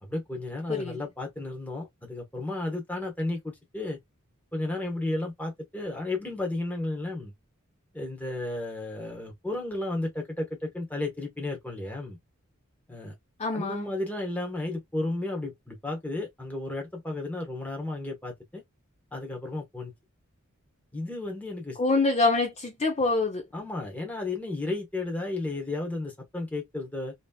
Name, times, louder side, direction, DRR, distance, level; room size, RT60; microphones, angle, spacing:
voice 1, 0.0-4.0 4.5-7.3 7.9-12.2 12.9-13.1 13.5-18.6 19.1-19.9 20.9-21.8 23.5-27.1, left 2 dB, 5° left, 1.1 m, -33 dB
voice 2, 13.4-13.9 21.8-23.4, left 3 dB, 30° left, 0.6 m, -25 dB
2.9 x 2.8 x 2.2 m
head